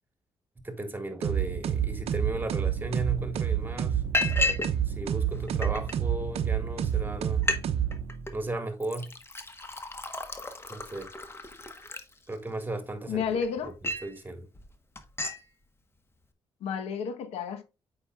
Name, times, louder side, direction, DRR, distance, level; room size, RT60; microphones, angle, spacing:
voice 1, 0.6-4.0 4.9-7.5 8.3-9.1 10.7-11.1 12.3-14.5, right 2 dB, 20° right, 1.7 m, -35 dB
sound 1, 1.2-8.4, right 9 dB, 75° right, 0.6 m, -29 dB
Liquid, 3.0-3.1 3.4-3.7 4.1-4.7 5.0-5.9 6.6-6.7 7.0-7.1 7.3-7.6 7.9-8.3 8.8-12.6 13.1-14.1 14.5-14.7 15.0-15.4, left 2 dB, 25° left, 1.3 m, -33 dB
voice 2, 13.1-13.8 16.6-17.6, left 7 dB, 90° left, 1.0 m, -31 dB
8.2 x 5.2 x 2.4 m
cardioid pair, 75°, 10 cm